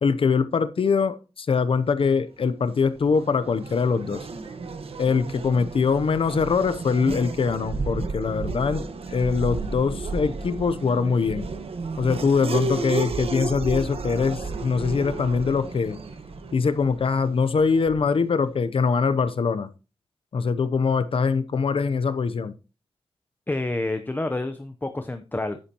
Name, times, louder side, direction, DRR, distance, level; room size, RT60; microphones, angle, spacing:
voice 1, 0.0-4.3 5.0-11.5 12.0-16.0 16.5-19.7 20.3-22.5, left 5 dB, 65° left, 0.7 m, -23 dB
Race car auto racing / Accelerating revving vroom, 2.6-18.2, right 3 dB, 75° right, 1.3 m, -33 dB
voice 2, 23.5-25.6, left 2 dB, 20° left, 0.7 m, -28 dB
10.0 x 9.8 x 2.9 m
wide cardioid pair, 125°, 10 cm